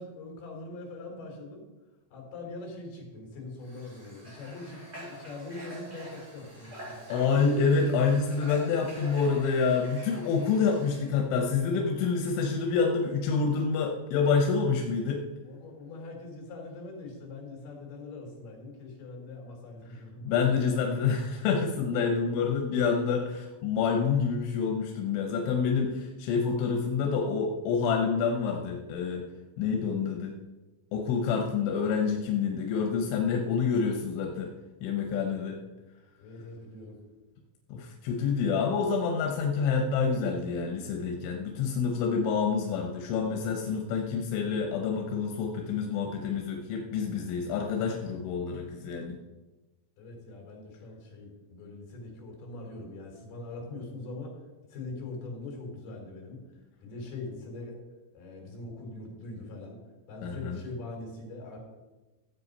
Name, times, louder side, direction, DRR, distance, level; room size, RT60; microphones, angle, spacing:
voice 1, 0.0-1.6 2.1-7.0 15.5-20.3 36.2-37.0 50.0-54.4 54.7-56.4 56.8-57.8 58.1-59.8 60.1-61.6, left 2 dB, 60° left, 0 dB, 5.7 m, -42 dB
Water / Water tap faucet, 3.6-11.1, right 1 dB, 15° right, 4.6 m, -47 dB
voice 2, 7.1-15.2 20.3-29.2 29.6-30.3 30.9-34.5 34.8-35.6 37.7-49.2 60.2-60.6, left 5 dB, 85° left, 2 dB, 3.5 m, -27 dB
15.5 x 8.1 x 5.4 m, 1.1 s
omnidirectional pair, 5.3 m